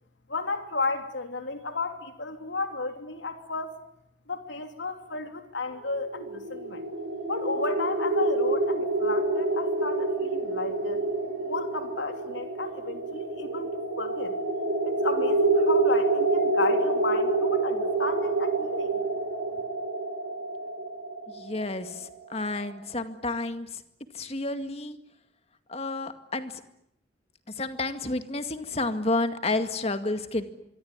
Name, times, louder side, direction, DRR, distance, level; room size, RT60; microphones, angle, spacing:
voice 1, 0.3-3.7 4.3-6.8 7.3-11.1 11.4-14.3 14.8-19.0, left 3 dB, 80° left, 7 dB, 3.0 m, -33 dB
sound 1, 5.9-22.8, right 2 dB, 85° right, 4.9 m, -27 dB
voice 2, 21.3-23.8 24.1-25.0 25.7-26.5 27.6-30.4, left 2 dB, 35° left, 9 dB, 2.1 m, -30 dB
26.0 x 23.5 x 9.7 m, 0.77 s
head